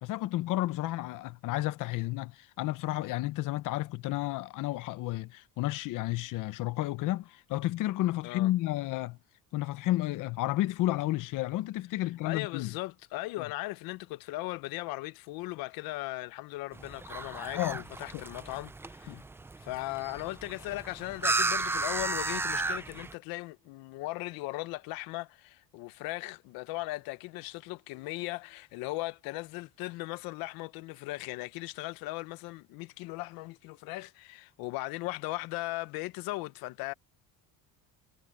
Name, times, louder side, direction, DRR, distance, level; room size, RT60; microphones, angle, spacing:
voice 1, 0.0-9.2 9.5-12.7 17.5-17.8 19.1-19.2, left 16 dB, 60° left, 0.9 m, -31 dB
voice 2, 12.0-19.2 19.6-36.9, left 20 dB, 90° left, 0.7 m, -38 dB
sound 1, 16.7-23.1, right 3 dB, 5° right, 0.3 m, -34 dB
cardioid pair, 155°, 35 cm